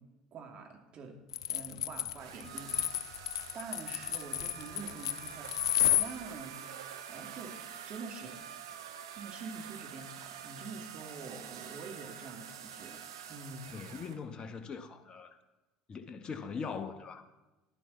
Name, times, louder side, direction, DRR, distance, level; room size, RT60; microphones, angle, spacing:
voice 1, 0.3-1.2 1.5-3.2 3.5-6.6 7.1-7.6 7.9-8.4 9.2-13.0 13.3-13.7, right 4 dB, 40° right, 2.4 m, -46 dB
sound 1, 1.3-6.1, left 12 dB, 75° left, 0.5 m, -31 dB
sound 2, 2.2-14.2, right 9 dB, 75° right, 1.0 m, -46 dB
voice 2, 13.7-15.4 15.9-17.3, left 5 dB, 35° left, 1.0 m, -41 dB
15.0 x 11.0 x 4.2 m
hypercardioid pair, 70°, 3 cm